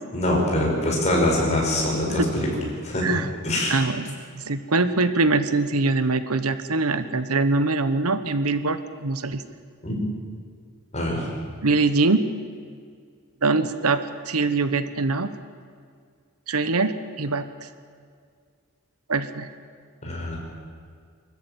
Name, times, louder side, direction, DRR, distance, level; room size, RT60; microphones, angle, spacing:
voice 1, 0.1-2.5 2.8-3.1 3.4-3.8 9.8-10.1 10.9-11.3 20.0-20.4, left 1 dB, 30° left, -2 dB, 5.5 m, -24 dB
voice 2, 3.7-9.4 11.6-12.2 13.4-14.0 14.3-15.3 16.5-17.7 19.1-19.5, right 3 dB, 90° right, 12 dB, 1.1 m, -23 dB
24.5 x 13.5 x 9.1 m, 2.1 s
head